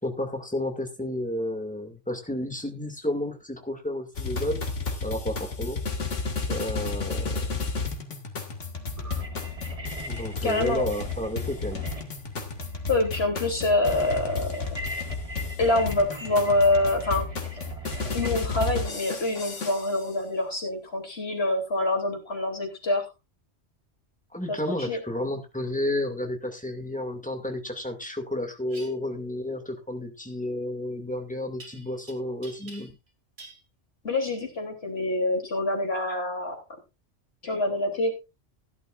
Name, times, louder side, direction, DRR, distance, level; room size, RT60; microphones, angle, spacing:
voice 1, 0.0-4.6 5.0-5.8 6.5-7.5 10.1-11.9 24.3-32.9, left 1 dB, 5° left, 4 dB, 2.2 m, -31 dB
sound 1, 4.1-20.1, left 4 dB, 90° left, 2.3 m, -33 dB
sound 2, 9.0-18.4, equal, 30° right, 1.6 m, -40 dB
voice 2, 10.4-10.9 12.9-14.8 15.6-17.3 18.1-23.1 24.5-25.0 34.0-36.6 37.4-38.1, left 2 dB, 60° left, 2 dB, 3.6 m, -26 dB
sound 3, 28.7-28.9 31.6-32.1 32.4-33.1 33.4-33.6, right 2 dB, 60° right, 3.0 m, -46 dB
16.0 x 11.5 x 2.5 m, 0.26 s
omnidirectional pair, 1.2 m